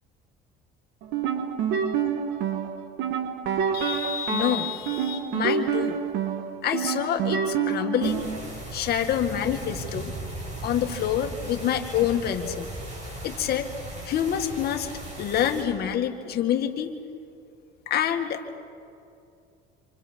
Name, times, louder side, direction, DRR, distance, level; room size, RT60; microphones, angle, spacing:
sound 1, 1.0-8.5, right 7 dB, 80° right, 1.7 m, -28 dB
voice 1, 3.7-6.0 6.6-8.3 8.7-10.1 10.6-12.7 13.2-13.7 14.1-14.9 15.2-17.0 17.9-18.4, left 10 dB, 55° left, 5 dB, 2.1 m, -27 dB
sound 2, 8.0-15.6, right 1 dB, 40° right, 7.5 m, -37 dB
27.5 x 27.0 x 5.4 m, 2.5 s
cardioid pair, 110°, 19 cm